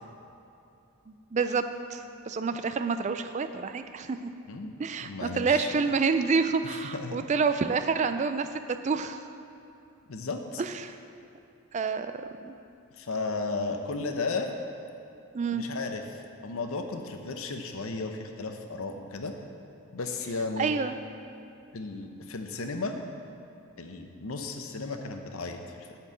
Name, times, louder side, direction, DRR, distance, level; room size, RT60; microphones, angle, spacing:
voice 1, 1.1-1.6 1.9-4.2 4.8-8.5 8.8-9.2 10.6-10.9 11.7-12.1 12.4-12.5 15.3-15.6 20.6-20.9, right 5 dB, 30° right, 9 dB, 0.3 m, -28 dB
voice 2, 5.0-5.8 6.6-7.2 10.1-10.6 13.0-14.5 15.5-19.3 19.9-20.7 21.7-23.0 23.8-26.0, left 3 dB, 70° left, 5 dB, 0.7 m, -34 dB
8.5 x 4.5 x 7.4 m, 2.7 s
head